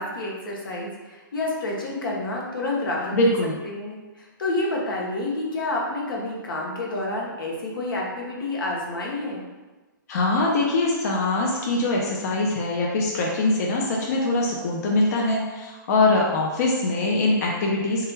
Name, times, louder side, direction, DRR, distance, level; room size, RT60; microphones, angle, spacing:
voice 1, 0.0-3.3 3.6-9.4, left 2 dB, 90° left, -2 dB, 0.7 m, -29 dB
voice 2, 3.1-3.5 10.1-18.1, left 2 dB, 50° left, -2 dB, 0.4 m, -23 dB
2.3 x 2.1 x 3.1 m, 1.2 s
hypercardioid pair, 155°, 11 cm